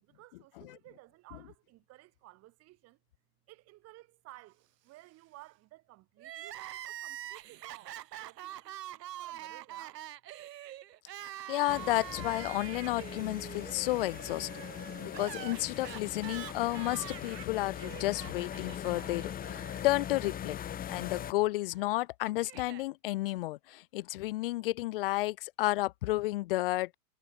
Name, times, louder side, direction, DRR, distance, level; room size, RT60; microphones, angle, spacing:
voice 1, 0.0-3.0 3.5-10.0, right 18 dB, 30° right, 2.2 m, -56 dB
Crying sobbing, 6.2-20.3 20.6-20.7 21.7-22.8, right 13 dB, 75° right, 1.1 m, -45 dB
voice 2, 11.2-14.5 15.0-20.6 20.9-26.9, left 18 dB, 35° left, 0.5 m, -32 dB
sound 1, 11.7-21.3, left 10 dB, 15° left, 1.5 m, -41 dB
hypercardioid pair, 130°, 49 cm